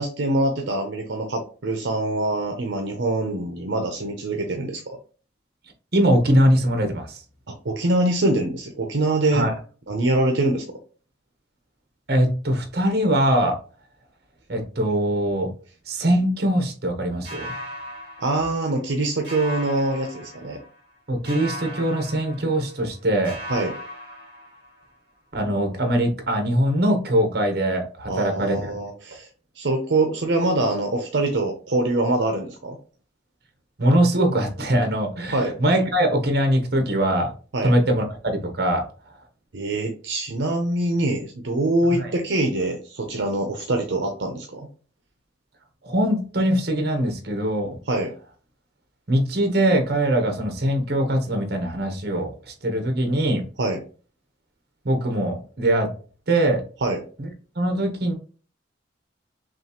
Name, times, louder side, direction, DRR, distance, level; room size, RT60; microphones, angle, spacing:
voice 1, 0.0-4.8 7.5-9.5 9.9-10.6 18.2-20.6 23.5-23.7 28.1-29.3 29.6-32.8 35.3-35.5 37.5-37.7 39.5-44.7 47.9-48.1 53.6-53.8 56.8-57.0, right 2 dB, 75° right, 3 dB, 0.7 m, -24 dB
voice 2, 5.9-7.2 9.3-9.5 12.1-13.6 14.5-15.5 15.9-17.5 21.1-23.4 25.3-28.7 33.8-37.3 37.6-38.8 42.0-42.1 45.8-47.8 49.1-53.4 54.8-55.9 56.3-56.6 57.2-57.3 57.6-58.1, right 1 dB, 55° right, 5 dB, 1.1 m, -22 dB
sound 1, 17.2-19.0 19.2-20.9 21.2-23.0 23.2-24.9, equal, 25° right, 2.3 m, -38 dB
6.1 x 2.4 x 3.0 m, 0.39 s
head